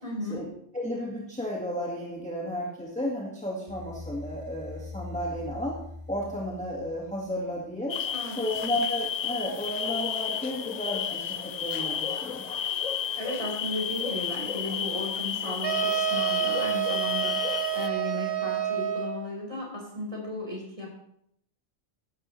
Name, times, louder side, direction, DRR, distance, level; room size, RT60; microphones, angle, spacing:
voice 1, 0.0-0.5 8.1-8.7 13.2-20.9, left 1 dB, 25° right, -2 dB, 4.6 m, -35 dB
voice 2, 0.7-5.8 6.1-8.0 8.4-12.4, equal, 5° left, -4 dB, 1.8 m, -33 dB
sound 1, 3.7-7.7, left 3 dB, 20° left, 5.9 m, -43 dB
sound 2, 7.9-17.9, left 8 dB, 85° left, 0.3 m, -32 dB
sound 3, 15.6-19.3, right 11 dB, 50° right, 1.2 m, -29 dB
15.0 x 11.5 x 3.2 m, 0.73 s
omnidirectional pair, 1.3 m